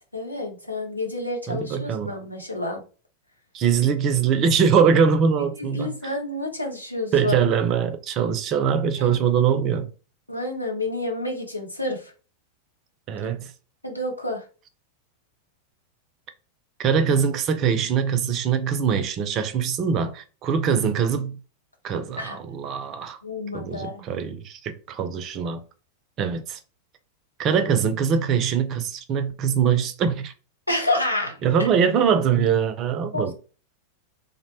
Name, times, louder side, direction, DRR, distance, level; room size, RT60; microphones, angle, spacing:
voice 1, 0.1-2.8 5.6-7.4 9.0-9.1 10.3-12.0 13.8-14.4 22.2-22.4 23.2-24.0 30.7-31.7 33.1-33.3, left 2 dB, 85° left, 0.6 m, -29 dB
voice 2, 1.5-2.1 3.5-6.1 7.1-9.9 13.1-13.5 16.8-21.4 21.8-23.2 23.5-25.6 26.2-26.6 27.4-30.3 31.4-33.3, right 7 dB, 35° right, 0.4 m, -22 dB
2.5 x 2.0 x 2.8 m
figure-of-eight pair, 90°, 0 cm